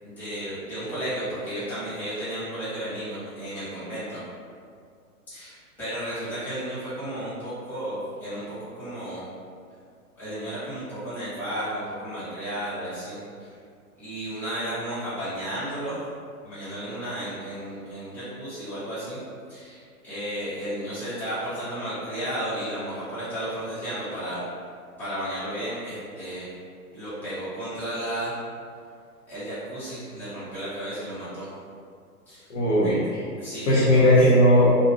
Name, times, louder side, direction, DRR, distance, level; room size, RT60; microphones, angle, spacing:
voice 1, 0.0-4.2 5.3-9.2 10.2-13.5 14.0-16.0 16.4-19.2 19.5-24.4 25.0-26.5 26.9-28.4 29.3-31.5 32.3-32.5 32.8-32.9 33.4-34.1, right 1 dB, 5° left, -15 dB, 1.2 m, -33 dB
voice 2, 32.5-33.2 33.7-34.7, equal, 55° left, -7 dB, 1.0 m, -18 dB
2.6 x 2.5 x 3.0 m, 2.2 s
hypercardioid pair, 130°, 45 cm